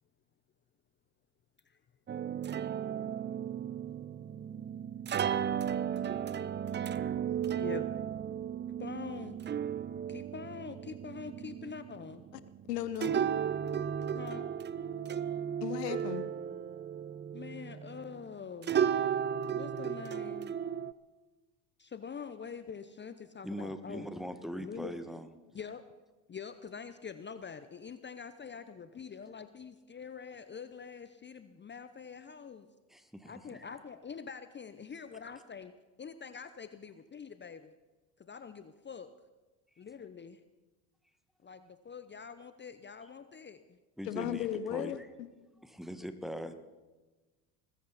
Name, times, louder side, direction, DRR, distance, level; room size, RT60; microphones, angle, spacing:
sound 1, 2.1-18.3 18.6-20.9, right 8 dB, 25° right, 0.6 m, -35 dB
voice 1, 7.5-7.9 8.8-9.4 10.1-12.2 14.1-14.5 17.3-18.8 19.5-20.6 21.8-24.1 24.6-25.0 25.5-25.8 26.3-32.7 33.3-35.7 36.0-37.7 38.2-39.1 39.8-40.4 41.4-43.8, left 6 dB, 25° left, 11 dB, 0.8 m, -45 dB
voice 2, 12.7-13.2 15.6-16.2 44.0-45.3, left 10 dB, 80° left, 14 dB, 1.2 m, -36 dB
voice 3, 23.4-25.3 32.9-33.6 44.0-44.9 45.6-46.5, equal, ahead, 8 dB, 1.7 m, -41 dB
21.0 x 14.0 x 4.2 m, 1.2 s
hypercardioid pair, 70°, 48 cm